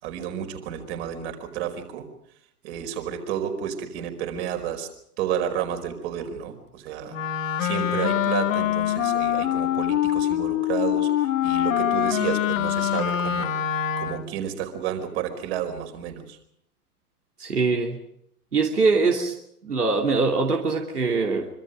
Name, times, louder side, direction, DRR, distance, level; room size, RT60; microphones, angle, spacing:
voice 1, 0.0-2.1 2.6-4.9 5.2-7.2 7.6-13.5 14.0-16.4, right 9 dB, 45° right, 6 dB, 5.0 m, -31 dB
Wind instrument woodwind instrument, 7.1-14.4, left 11 dB, 55° left, 1.8 m, -24 dB
voice 2, 17.4-18.0 18.5-19.3 19.6-21.5, right 4 dB, 75° right, 2 dB, 2.9 m, -22 dB
26.0 x 25.5 x 5.2 m, 0.71 s
figure-of-eight pair, 105°, 46 cm